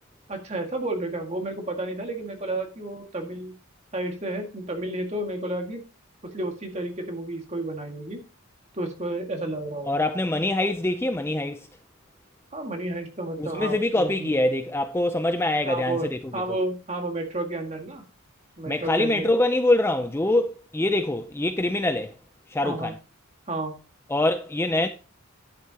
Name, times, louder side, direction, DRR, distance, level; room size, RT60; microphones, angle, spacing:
voice 1, 0.3-3.5 3.9-5.8 6.3-8.2 8.7-10.0 12.5-14.3 15.7-18.0 18.6-19.3 22.6-22.9 23.5-23.7, right 2 dB, 30° right, 1.9 m, -31 dB
voice 2, 9.9-11.7 13.4-16.2 18.7-22.1 22.5-23.0 24.1-24.9, left 1 dB, 10° left, 0.4 m, -24 dB
10.5 x 8.2 x 2.9 m
head